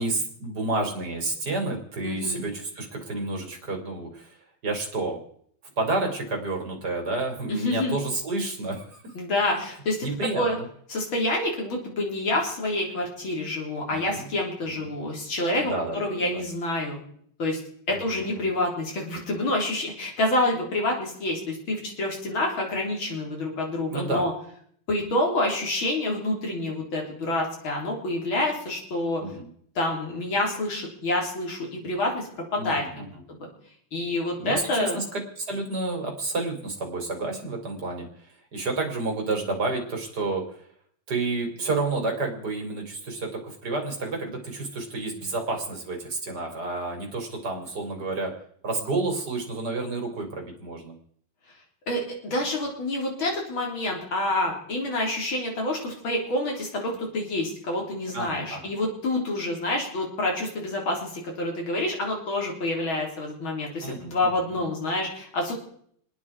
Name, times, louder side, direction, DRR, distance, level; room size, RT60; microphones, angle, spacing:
voice 1, 0.0-4.4 4.6-5.2 5.8-9.0 10.0-10.7 13.9-14.3 14.7-14.9 15.6-16.4 17.9-18.5 23.9-24.3 29.2-29.5 32.6-33.0 34.4-40.6 41.1-48.3 48.6-51.0 58.1-58.7 63.8-64.3, right 2 dB, 50° right, 2 dB, 3.7 m, -30 dB
voice 2, 2.0-2.5 7.5-8.0 9.1-10.0 10.4-10.6 10.9-17.0 17.4-17.6 17.9-24.3 24.9-29.2 29.8-33.5 33.9-35.0 51.9-65.5, left 1 dB, 75° left, 0 dB, 4.3 m, -27 dB
29.5 x 10.0 x 4.8 m, 0.65 s
omnidirectional pair, 2.3 m